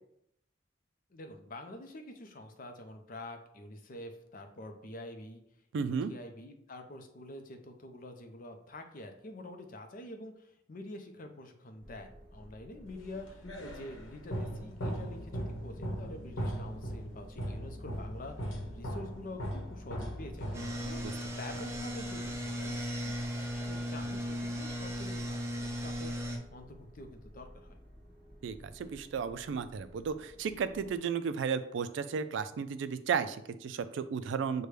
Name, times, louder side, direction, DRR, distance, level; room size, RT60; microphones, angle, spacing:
voice 1, 1.1-5.4 5.8-20.5 20.8-27.8, left 1 dB, 45° left, 5 dB, 0.5 m, -47 dB
voice 2, 5.7-6.1 21.0-21.1 28.4-34.7, right 6 dB, 70° right, 12 dB, 0.3 m, -34 dB
sound 1, 11.8-31.0, equal, 5° left, 1.7 m, -55 dB
sound 2, 13.0-21.1, equal, 80° left, 0.9 m, -39 dB
sound 3, 20.5-26.4, equal, 15° right, 0.6 m, -36 dB
6.6 x 2.2 x 3.2 m, 0.74 s
head